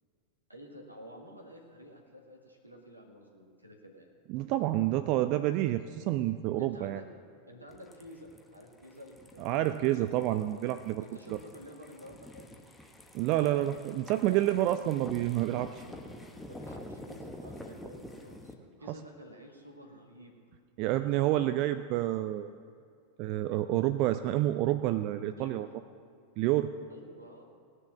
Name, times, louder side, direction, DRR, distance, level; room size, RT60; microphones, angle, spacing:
voice 1, 0.5-4.1 6.6-7.1 7.5-9.8 11.0-12.6 13.9-14.4 16.5-20.3 20.8-21.2 25.4-25.7 26.9-27.4, equal, 85° right, 1 dB, 1.8 m, -51 dB
voice 2, 4.3-7.0 9.4-11.0 11.3-11.4 13.1-15.8 20.8-22.5 23.2-25.7 26.4-26.7, right 14 dB, 40° right, 11 dB, 0.4 m, -28 dB
sound 1, 7.7-18.5, left 1 dB, 5° left, 1.1 m, -48 dB
18.5 x 6.9 x 6.2 m, 2.2 s
figure-of-eight pair, 90°, 0 cm